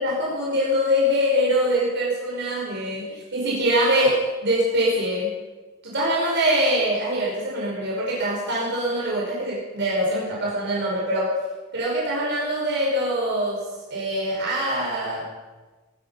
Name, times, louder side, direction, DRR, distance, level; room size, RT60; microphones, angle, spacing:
voice 1, 0.0-5.3 5.8-11.3 11.7-13.6 13.9-15.3, equal, 55° right, -5 dB, 5.6 m, -23 dB
21.0 x 10.5 x 5.7 m, 1.2 s
head